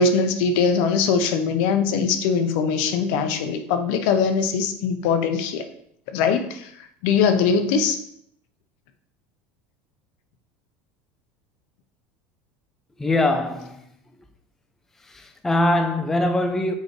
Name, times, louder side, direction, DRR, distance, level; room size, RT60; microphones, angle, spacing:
voice 1, 0.0-5.7 6.1-8.0, left 5 dB, 65° left, 0.8 m, -21 dB
voice 2, 13.0-13.9 15.0-16.7, left 1 dB, 5° left, 0.4 m, -22 dB
6.5 x 4.8 x 3.2 m
cardioid pair, 160°, 5 cm